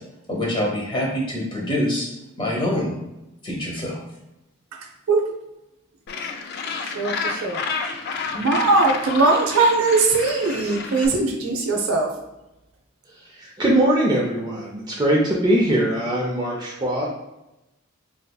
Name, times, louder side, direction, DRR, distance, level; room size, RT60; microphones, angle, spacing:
voice 1, 0.3-2.1 2.4-3.0 3.4-3.9, left 1 dB, 25° left, -3 dB, 0.9 m, -25 dB
Gull seagull, 6.1-11.1, left 5 dB, 50° left, 0.3 m, -30 dB
voice 2, 6.8-7.6 8.3-12.1, right 3 dB, 85° right, 1 dB, 0.6 m, -20 dB
voice 3, 13.3-17.0, right 1 dB, 20° right, -3 dB, 0.5 m, -21 dB
4.1 x 2.6 x 2.3 m, 0.94 s
head